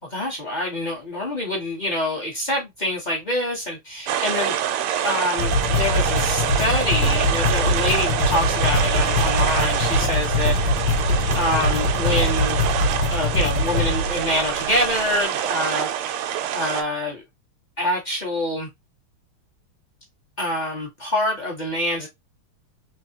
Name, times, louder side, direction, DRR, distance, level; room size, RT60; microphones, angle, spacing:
voice 1, 0.0-4.6 5.0-10.6 11.3-12.6 13.1-16.2 16.5-17.2 17.8-18.7 20.4-22.1, left 1 dB, 30° left, 0.9 m, -26 dB
sound 1, 4.1-16.8, right 10 dB, 90° right, 1.5 m, -26 dB
sound 2, 5.4-15.0, left 2 dB, 90° left, 1.6 m, -23 dB
3.6 x 3.0 x 2.8 m
omnidirectional pair, 2.4 m